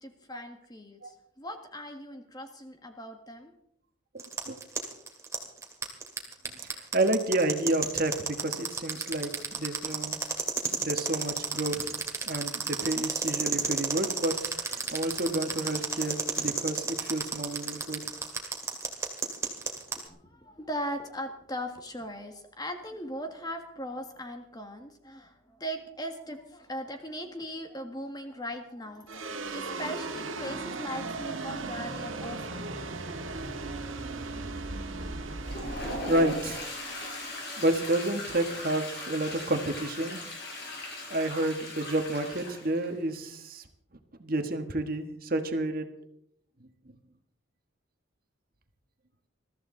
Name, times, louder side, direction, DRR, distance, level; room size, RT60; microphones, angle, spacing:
voice 1, 0.0-3.5 19.8-32.8, equal, 20° left, 5 dB, 1.6 m, -39 dB
sound 1, 4.2-20.0, right 4 dB, 15° right, 2.2 m, -31 dB
voice 2, 6.7-10.2 10.8-11.9 12.2-18.0 36.1-36.6 37.6-40.2 41.1-43.6 44.2-45.9, right 1 dB, 45° right, 6 dB, 1.4 m, -30 dB
sound 2, 29.1-37.6, right 3 dB, 80° right, 1.7 m, -37 dB
Toilet flush, 35.3-42.9, left 2 dB, 55° left, 5.9 m, -39 dB
21.5 x 14.0 x 3.8 m, 0.71 s
head